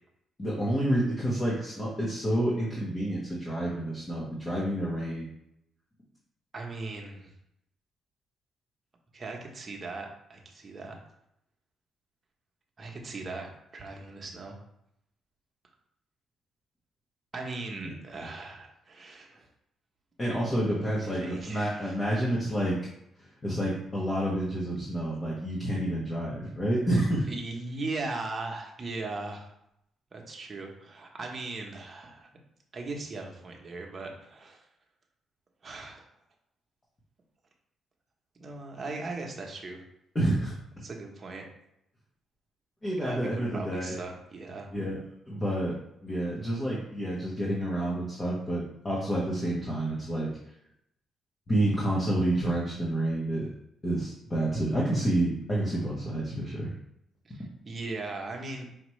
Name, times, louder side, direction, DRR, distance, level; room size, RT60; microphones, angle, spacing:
voice 1, 0.4-5.3 17.8-17.9 20.2-22.8 23.4-27.3 40.1-40.5 42.8-43.9 44.7-45.7 46.0-50.3 51.5-53.5 53.8-56.7, right 1 dB, 25° left, -5 dB, 1.2 m, -29 dB
voice 2, 6.5-7.3 9.1-10.9 12.8-14.6 17.3-19.5 20.9-22.0 27.3-29.5 30.1-32.3 32.7-34.6 35.6-36.1 38.4-39.8 40.8-41.5 43.0-44.7 57.3-58.7, right 3 dB, 35° right, 1 dB, 1.0 m, -38 dB
5.1 x 2.9 x 3.2 m, 0.79 s
cardioid pair, 90°, 0 cm